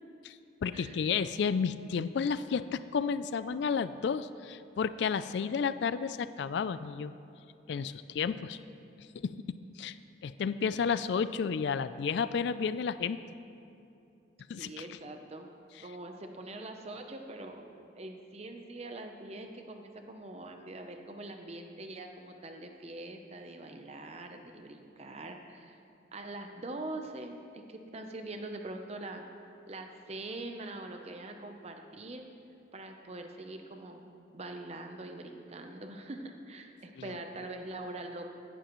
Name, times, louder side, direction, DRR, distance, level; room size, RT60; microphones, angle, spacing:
voice 1, 0.6-7.1 7.7-8.6 9.2-9.4 9.8-10.0 10.2-13.2 14.5-15.0 15.8-15.9, left 6 dB, 60° left, 14 dB, 0.3 m, -32 dB
voice 2, 14.6-15.5 15.8-25.8 26.1-29.2 29.7-32.3 32.7-34.0 34.3-38.3, right 2 dB, 35° right, 4 dB, 0.7 m, -43 dB
16.5 x 11.5 x 3.1 m, 2.7 s
head